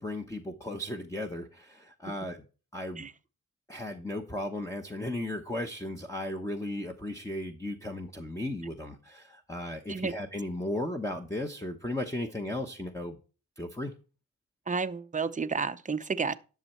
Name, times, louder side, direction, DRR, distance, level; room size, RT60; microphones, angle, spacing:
voice 1, 0.0-2.5 2.7-3.1 3.7-13.2 13.6-13.9, left 1 dB, 10° left, 0.9 m, -35 dB
voice 2, 14.7-16.4, right 5 dB, 20° right, 0.7 m, -31 dB
11.0 x 6.3 x 4.4 m
cardioid pair, 80°, 34 cm